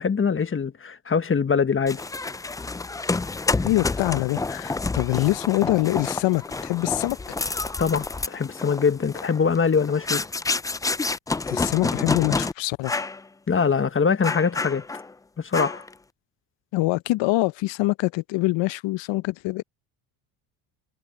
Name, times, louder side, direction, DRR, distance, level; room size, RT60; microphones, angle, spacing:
voice 1, 0.0-2.0 7.8-10.2 13.5-14.8 15.4-15.8, left 6 dB, 25° left, 1.4 m, -23 dB
sound 1, 1.9-12.5 12.8-13.2 13.6-13.7 14.2-15.1 15.5-15.9, left 3 dB, 10° left, 0.3 m, -29 dB
voice 2, 3.6-7.4 11.5-13.0 16.7-19.6, left 19 dB, 65° left, 0.8 m, -24 dB
supercardioid pair, 80°, 49 cm